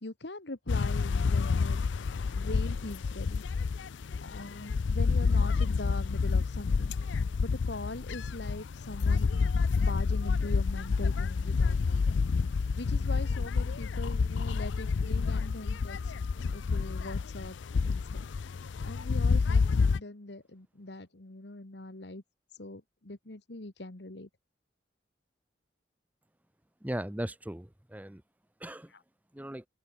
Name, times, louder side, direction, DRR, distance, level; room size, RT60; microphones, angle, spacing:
voice 1, 0.0-1.8 2.3-3.4 4.2-6.9 7.4-9.3 9.8-12.2 12.8-16.0 16.5-18.3 18.8-19.7 19.9-22.2 22.6-24.3, left 2 dB, 65° left, 1.7 m, -42 dB
sound 1, 0.7-20.0, left 4 dB, 80° left, 0.5 m, -29 dB
sound 2, 10.1-21.0, right 1 dB, 45° right, 4.1 m, -63 dB
voice 2, 26.8-28.2 28.6-28.9 29.3-29.7, right 1 dB, 10° right, 0.8 m, -38 dB
open air
head